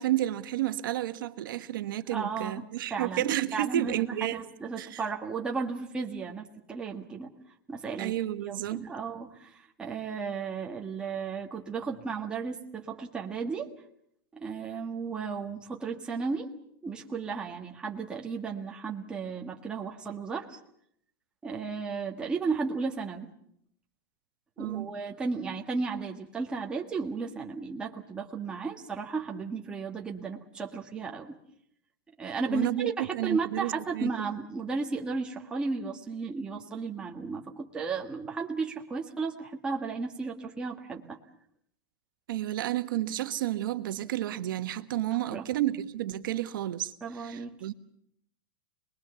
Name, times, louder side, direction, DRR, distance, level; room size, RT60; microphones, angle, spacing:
voice 1, 0.0-4.4 4.8-5.0 8.0-8.9 24.6-24.9 32.5-34.1 42.3-47.7, right 13 dB, 70° right, 1.4 m, -31 dB
voice 2, 2.1-2.6 2.9-7.3 7.7-8.1 8.5-13.7 14.3-16.5 16.8-20.6 21.4-23.3 24.6-31.4 32.2-41.2 45.3-45.5 47.0-47.5, right 4 dB, 10° right, 1.6 m, -34 dB
27.0 x 21.0 x 7.0 m
supercardioid pair, 175°, 11 cm